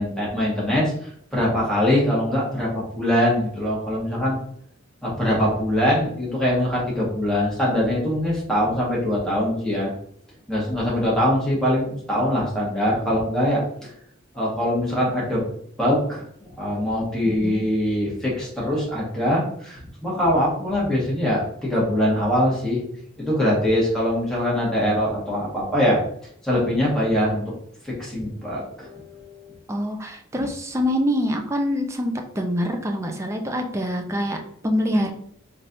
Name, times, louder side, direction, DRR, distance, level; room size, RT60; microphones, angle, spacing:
voice 1, 0.0-4.4 5.0-9.9 10.5-13.9 14.3-15.4 15.8-16.2 16.6-22.8 23.2-26.0 26.4-27.5 27.8-29.5, left 1 dB, 5° left, -6 dB, 1.5 m, -23 dB
voice 2, 17.3-17.7 29.7-35.1, equal, 15° right, 4 dB, 0.5 m, -25 dB
4.1 x 3.3 x 2.6 m, 0.66 s
head